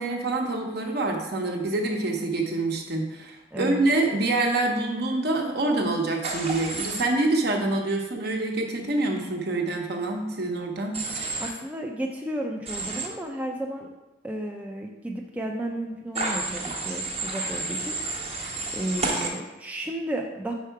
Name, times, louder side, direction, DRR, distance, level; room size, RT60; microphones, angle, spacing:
voice 1, 0.0-11.0, right 2 dB, 60° right, 2 dB, 0.8 m, -26 dB
Human voice / Train, 6.2-7.0 10.9-11.5 12.6-13.1 16.1-19.3, right 3 dB, 35° right, 0.8 m, -30 dB
voice 2, 11.4-13.9 14.2-18.2 18.7-20.5, right 1 dB, 10° right, 0 dB, 0.4 m, -33 dB
4.7 x 4.6 x 4.6 m, 1.0 s
head